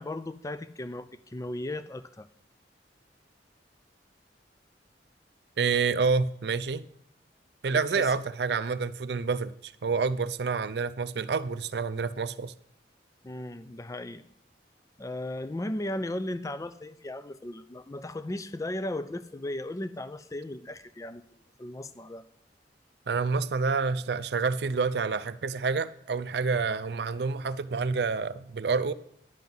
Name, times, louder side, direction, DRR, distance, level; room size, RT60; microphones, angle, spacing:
voice 1, 0.0-2.3 7.7-8.1 13.2-14.3 15.0-21.2 21.6-22.2, left 1 dB, 20° left, 0.4 m, -36 dB
voice 2, 5.6-6.9 7.6-12.5 23.1-28.9, right 4 dB, 65° right, 0.5 m, -28 dB
10.5 x 7.5 x 5.5 m
head